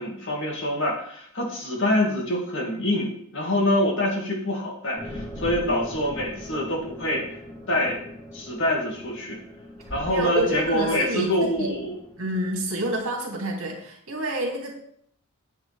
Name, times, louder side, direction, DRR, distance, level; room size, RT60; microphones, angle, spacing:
voice 1, 0.0-7.2 7.7-8.0 8.3-9.4 9.9-12.0, left 1 dB, 55° left, -1 dB, 2.5 m, -25 dB
sound 1, 5.0-13.0, left 1 dB, 15° left, 1.3 m, -40 dB
voice 2, 10.1-11.7 12.2-14.7, right 1 dB, 65° right, -1 dB, 3.1 m, -28 dB
9.9 x 8.6 x 3.6 m, 0.65 s
head